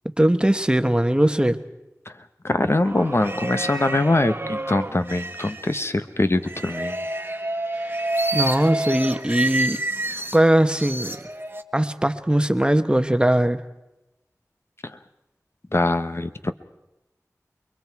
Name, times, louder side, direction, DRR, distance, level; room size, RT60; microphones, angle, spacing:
voice 1, 0.2-1.6 7.8-8.0 8.3-9.8 10.3-11.2 11.7-13.6, right 1 dB, 15° right, 10 dB, 1.2 m, -20 dB
voice 2, 2.0-7.1 14.8-15.0 15.7-16.5, left 2 dB, 45° left, 10 dB, 1.0 m, -23 dB
sound 1, 2.8-5.9 6.5-10.4 10.7-11.6, right 2 dB, 35° right, 1.4 m, -29 dB
28.5 x 23.0 x 4.7 m, 0.95 s
wide cardioid pair, 40°, 6 cm